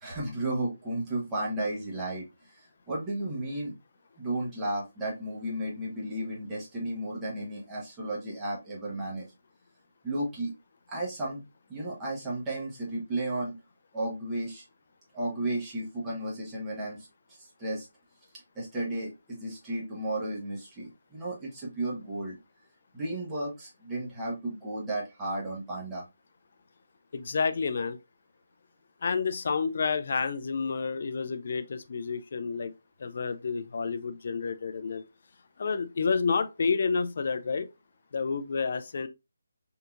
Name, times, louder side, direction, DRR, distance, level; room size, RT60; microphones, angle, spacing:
voice 1, 0.0-2.3 2.5-2.6 2.9-3.7 4.2-9.3 10.0-10.5 10.9-11.4 11.7-13.5 13.9-14.6 15.1-17.9 18.5-22.4 22.9-26.0, right 1 dB, 10° right, 1.1 m, -33 dB
voice 2, 27.1-28.0 29.0-32.7 33.0-35.0 35.6-37.7 38.1-39.1, left 5 dB, 50° left, 0.4 m, -29 dB
3.7 x 2.7 x 2.3 m
figure-of-eight pair, 160°, 0 cm